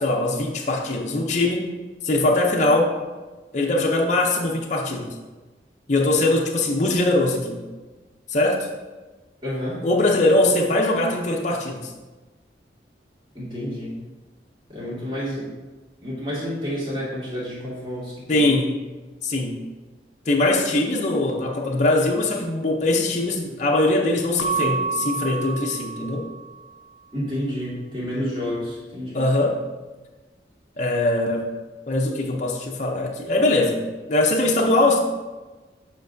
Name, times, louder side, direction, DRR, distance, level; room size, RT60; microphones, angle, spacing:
voice 1, 0.0-1.8 2.0-3.0 3.5-5.2 5.9-7.6 8.3-8.7 9.8-11.9 18.3-18.7 19.2-19.6 20.3-26.3 29.1-29.6 30.8-31.5 31.9-33.8 34.1-35.0, left 2 dB, 40° left, 0 dB, 0.6 m, -21 dB
voice 2, 9.4-9.8 13.3-14.0 14.7-15.5 16.0-18.5 27.1-29.2, equal, 30° right, -7 dB, 2.1 m, -30 dB
Keyboard (musical) / Bell, 24.4-26.8, right 5 dB, 90° left, 0.4 m, -29 dB
7.9 x 5.1 x 2.6 m, 1.2 s
head